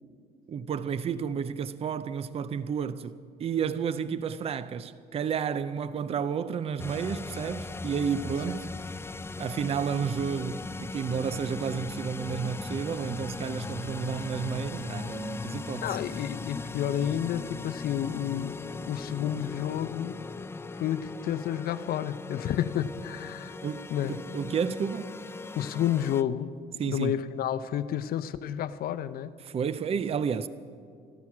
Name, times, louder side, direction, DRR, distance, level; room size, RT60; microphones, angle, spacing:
voice 1, 0.5-8.7 9.4-15.9 23.6-23.9 24.3-25.2 26.8-27.2 29.4-30.5, right 7 dB, 35° right, 0.5 m, -31 dB
sound 1, 6.8-26.2, left 3 dB, 15° left, 0.4 m, -39 dB
voice 2, 15.8-18.6 18.8-20.2 20.8-23.6 23.9-24.2 25.6-26.5 26.8-29.3, left 10 dB, 60° left, 0.7 m, -30 dB
14.5 x 12.5 x 6.1 m
cardioid pair, 110°, 17 cm